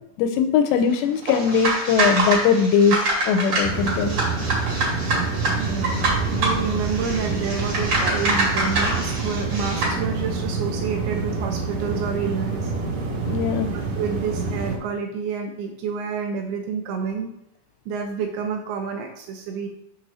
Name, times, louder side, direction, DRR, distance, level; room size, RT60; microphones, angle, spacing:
voice 1, 0.2-4.2 13.3-13.7, left 6 dB, 85° left, 8 dB, 2.6 m, -20 dB
sound 1, 1.2-10.0, right 2 dB, 45° right, 2.9 m, -25 dB
sound 2, 3.6-14.8, right 4 dB, 60° right, 2.7 m, -27 dB
voice 2, 5.6-12.7 13.7-17.3 17.9-19.7, right 5 dB, 80° right, 4 dB, 2.3 m, -29 dB
sound 3, 6.0-12.2, equal, 40° left, 0.8 m, -38 dB
6.7 x 5.9 x 4.0 m, 0.80 s
omnidirectional pair, 5.1 m